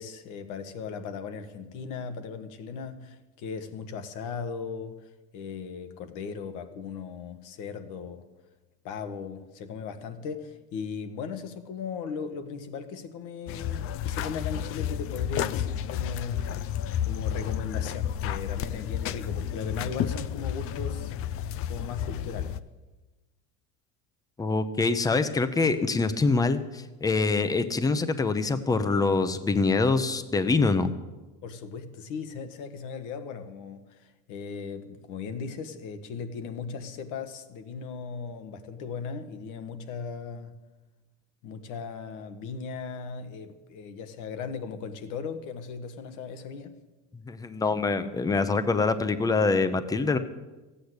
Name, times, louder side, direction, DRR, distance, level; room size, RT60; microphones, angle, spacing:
voice 1, 0.0-8.2 8.8-21.1 21.7-22.6 31.4-40.5 41.4-46.7, left 5 dB, 60° left, 9 dB, 1.6 m, -38 dB
sound 1, 13.5-22.6, left 10 dB, 40° left, 0.5 m, -31 dB
voice 2, 24.4-30.9 47.3-50.2, left 3 dB, 10° left, 12 dB, 0.7 m, -25 dB
15.0 x 8.7 x 8.1 m, 1.1 s
cardioid pair, 140°, 34 cm